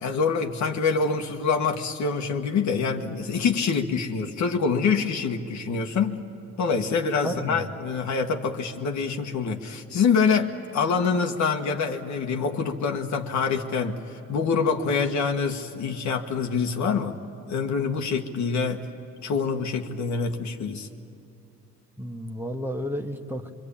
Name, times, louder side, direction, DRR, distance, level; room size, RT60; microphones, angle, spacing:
voice 1, 0.0-6.2 6.6-14.0 14.3-17.2 17.5-18.8 19.2-20.9, left 5 dB, 70° left, 4 dB, 1.6 m, -25 dB
voice 2, 7.2-7.6 22.0-23.5, equal, 5° right, 4 dB, 1.5 m, -32 dB
25.0 x 23.5 x 8.7 m, 2.8 s
cardioid pair, 90°, 30 cm